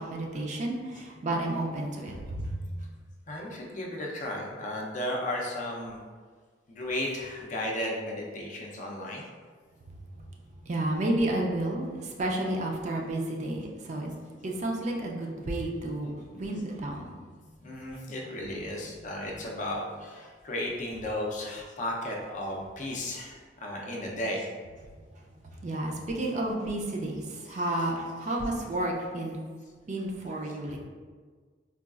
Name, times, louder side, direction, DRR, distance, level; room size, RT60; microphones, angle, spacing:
voice 1, 0.0-2.9 9.8-14.1 14.4-18.1 25.3-29.4 29.9-30.8, right 1 dB, 40° right, 0 dB, 0.4 m, -32 dB
voice 2, 3.3-6.0 6.7-9.3 17.6-24.5 27.5-27.6, left 1 dB, 45° left, -2 dB, 0.5 m, -34 dB
3.9 x 2.3 x 2.3 m, 1.5 s
head